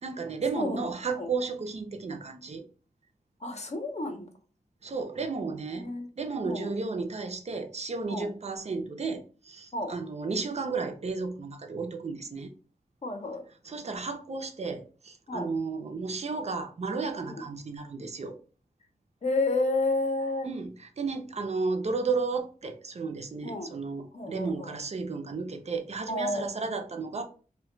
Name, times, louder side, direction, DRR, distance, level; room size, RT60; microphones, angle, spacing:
voice 1, 0.0-2.6 4.8-5.9 6.2-12.5 13.6-18.4 20.4-27.2, right 4 dB, 50° right, 0.5 m, -33 dB
voice 2, 0.5-1.3 3.4-4.3 5.7-6.1 6.4-6.7 8.1-8.3 9.7-9.9 13.0-13.4 15.3-15.5 17.3-17.4 19.2-20.5 23.4-23.7 24.1-24.8 26.1-26.5, left 2 dB, 50° left, 0.6 m, -31 dB
2.2 x 2.2 x 3.7 m
wide cardioid pair, 100°, 15 cm